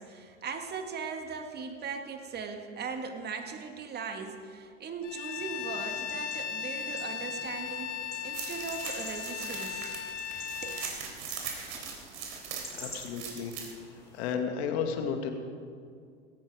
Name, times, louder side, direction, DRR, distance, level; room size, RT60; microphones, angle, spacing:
voice 1, 0.0-10.0 10.6-10.8, right 5 dB, 30° right, 5 dB, 1.9 m, -39 dB
Bowed string instrument, 5.0-10.9, left 8 dB, 75° left, 1.1 m, -37 dB
sound 1, 5.4-14.4, left 1 dB, 5° left, 5.3 m, -49 dB
sound 2, 8.3-13.7, right 6 dB, 45° right, 3.8 m, -40 dB
voice 2, 12.8-13.5 14.1-15.3, left 6 dB, 60° left, 5 dB, 2.0 m, -32 dB
17.5 x 14.5 x 4.8 m, 2.2 s
hypercardioid pair, 100°, 35 cm